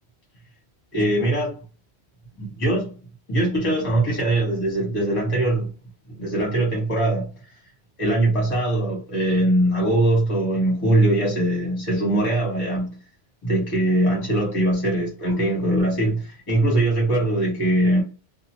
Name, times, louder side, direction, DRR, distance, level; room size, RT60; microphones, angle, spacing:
voice 1, 0.9-1.6 2.4-2.9 3.3-5.7 6.1-7.3 8.0-12.9 13.4-18.0, right 1 dB, 30° left, 1.1 m, -21 dB
2.8 x 2.1 x 2.9 m
omnidirectional pair, 1.1 m